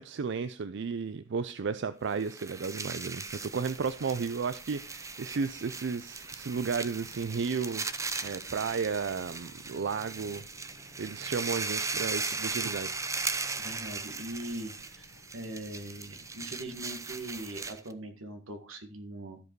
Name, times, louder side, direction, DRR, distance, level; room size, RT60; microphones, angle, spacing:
voice 1, 0.0-10.4 11.0-12.9, right 5 dB, 60° right, 13 dB, 0.5 m, -33 dB
sound 1, 2.1-17.9, right 4 dB, 15° right, 0.6 m, -38 dB
sound 2, 3.2-17.7, left 1 dB, 70° left, 1.4 m, -57 dB
voice 2, 13.6-19.4, right 1 dB, 85° right, 7 dB, 1.8 m, -41 dB
13.0 x 5.0 x 4.6 m, 0.35 s
head